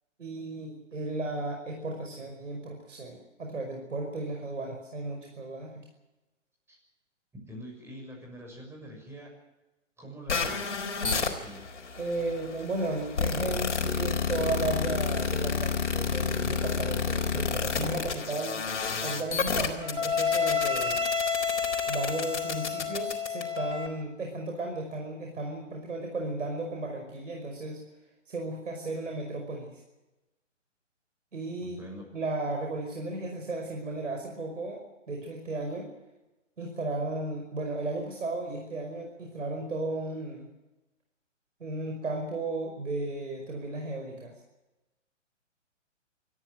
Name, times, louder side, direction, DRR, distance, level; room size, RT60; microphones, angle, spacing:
voice 1, 0.2-5.8 12.0-18.7 19.0-21.0 21.9-27.8 28.3-29.8 31.3-31.8 32.1-35.9 36.6-40.5 41.6-44.3, right 2 dB, 75° right, 1 dB, 5.5 m, -34 dB
voice 2, 7.3-9.3 10.0-12.4 31.6-32.1, equal, 5° right, 1 dB, 6.3 m, -46 dB
sound 1, 10.3-23.9, left 5 dB, 65° left, 4.4 m, -29 dB
25.0 x 14.5 x 7.8 m, 1.0 s
figure-of-eight pair, 135°, 38 cm